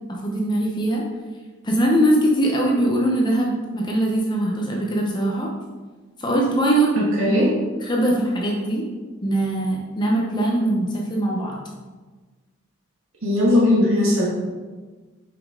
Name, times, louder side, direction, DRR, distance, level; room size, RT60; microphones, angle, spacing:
voice 1, 0.2-1.0 1.6-5.5 6.2-6.9 7.3-7.5 7.8-8.8 9.2-11.6, right 1 dB, 20° left, -2 dB, 0.8 m, -21 dB
voice 2, 7.0-7.5 13.2-14.3, left 1 dB, 75° right, -4 dB, 1.8 m, -18 dB
6.7 x 5.2 x 3.7 m, 1.3 s
head